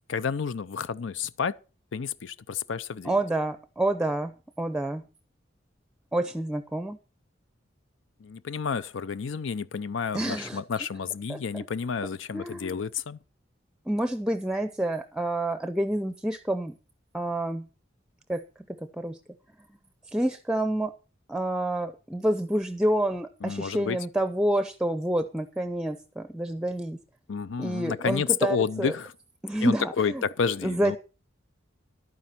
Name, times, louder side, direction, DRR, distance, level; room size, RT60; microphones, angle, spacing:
voice 1, 0.1-1.5 1.9-3.1 8.2-13.2 23.4-24.0 27.3-29.1 29.6-31.0, left 6 dB, 75° left, 0.5 m, -30 dB
voice 2, 3.0-5.0 6.1-7.0 10.1-10.6 11.3-11.6 12.3-12.8 13.9-16.8 17.1-17.7 18.3-18.4 18.7-19.2 20.1-20.9 21.3-27.0 27.6-28.9 29.4-30.2 30.6-31.0, right 1 dB, 5° right, 0.6 m, -28 dB
12.0 x 9.4 x 5.8 m
head